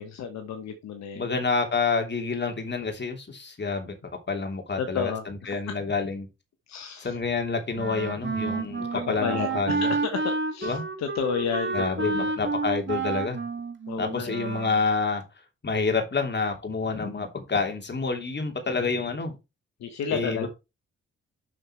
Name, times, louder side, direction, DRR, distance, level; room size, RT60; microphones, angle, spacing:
voice 1, 0.0-1.4 4.8-5.5 6.7-7.2 8.8-12.3 13.9-14.4 19.8-20.5, left 6 dB, 65° left, 7 dB, 1.2 m, -32 dB
voice 2, 1.1-4.0 4.3-6.3 7.0-9.9 10.6-10.8 11.7-13.4 14.0-15.2 15.6-19.3 20.1-20.5, left 4 dB, 35° left, 4 dB, 3.0 m, -28 dB
Wind instrument woodwind instrument, 7.8-14.8, right 4 dB, 40° right, 1.9 m, -30 dB
6.5 x 6.4 x 4.5 m, 0.25 s
hypercardioid pair, 40°, 29 cm